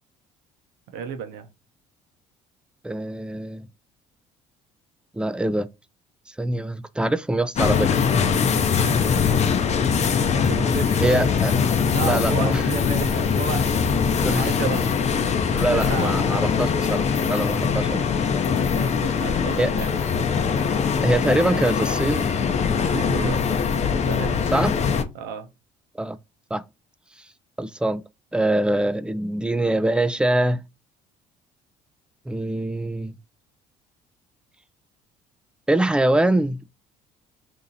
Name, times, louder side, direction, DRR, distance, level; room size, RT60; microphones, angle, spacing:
voice 1, 0.9-1.5 10.5-11.2 11.9-13.7 14.1-14.9 15.7-16.2 18.5-19.9 22.7-23.6 24.0-24.4 25.1-25.5, right 7 dB, 80° right, 0.7 m, -32 dB
voice 2, 2.8-3.7 5.1-5.7 6.3-7.9 11.0-11.5 12.0-12.6 14.2-14.7 15.5-18.1 19.6-19.7 21.0-22.3 24.5-24.8 26.0-26.2 26.5-26.6 27.6-28.0 28.3-30.6 32.3-33.2 35.7-36.6, right 1 dB, 5° right, 0.3 m, -23 dB
sound 1, 7.6-25.0, left 6 dB, 45° left, 0.6 m, -22 dB
2.9 x 2.7 x 3.8 m
supercardioid pair, 80°, 16 cm